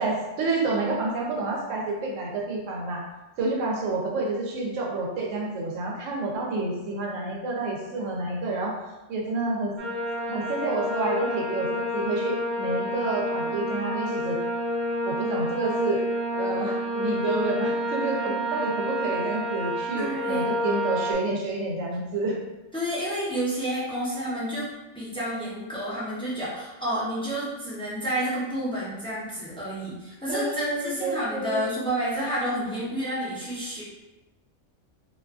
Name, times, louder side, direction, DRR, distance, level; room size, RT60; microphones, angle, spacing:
voice 1, 0.0-3.0 3.4-8.8 9.1-9.7 10.3-14.4 15.0-16.0 16.3-22.4 30.3-31.6, right 3 dB, 90° right, -1 dB, 1.0 m, -29 dB
sound 1, 9.8-21.1, left 1 dB, 60° right, 0.5 m, -29 dB
voice 2, 19.9-20.6 22.7-24.7 24.9-33.8, equal, 5° left, -9 dB, 0.5 m, -30 dB
2.5 x 2.4 x 2.3 m, 1.0 s
omnidirectional pair, 1.3 m